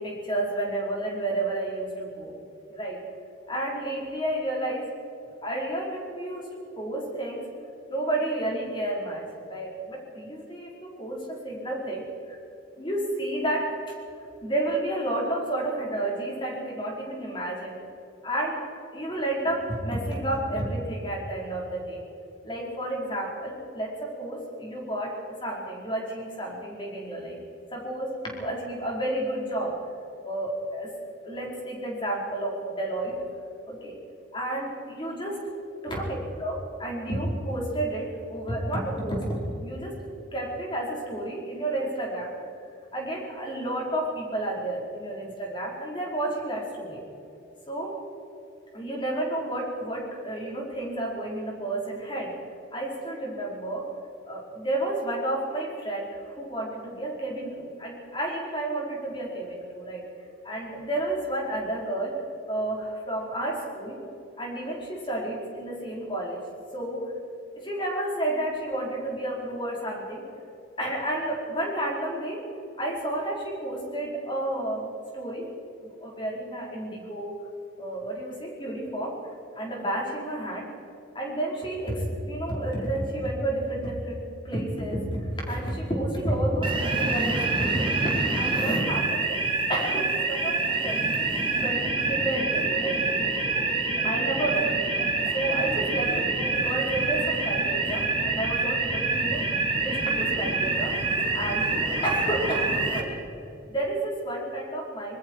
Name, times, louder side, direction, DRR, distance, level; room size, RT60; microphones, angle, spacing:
voice 1, 0.0-2.3 2.7-3.0 3.5-4.9 5.4-7.5 7.9-12.4 12.7-13.7 14.4-17.7 18.2-22.0 22.4-27.4 27.7-29.8 30.2-30.9 31.2-33.2 33.7-34.0 34.3-35.4 35.8-40.0 40.3-42.3 42.9-47.0 47.7-48.0 48.7-52.3 52.7-53.9 54.3-60.0 60.4-62.2 62.5-64.0 64.4-66.4 66.7-67.1 67.5-70.2 70.8-72.4 72.8-75.5 75.8-77.4 77.8-79.2 79.6-80.7 81.1-89.4 89.7-91.1 91.5-93.0 94.0-94.8 95.3-99.5 99.8-101.0 101.3-101.8 102.0-103.2 103.7-105.2, right 1 dB, 25° left, -2 dB, 4.7 m, -31 dB
sound 1, 86.6-103.0, right 3 dB, 25° right, 2.4 m, -26 dB
26.0 x 21.0 x 4.8 m, 2.8 s
head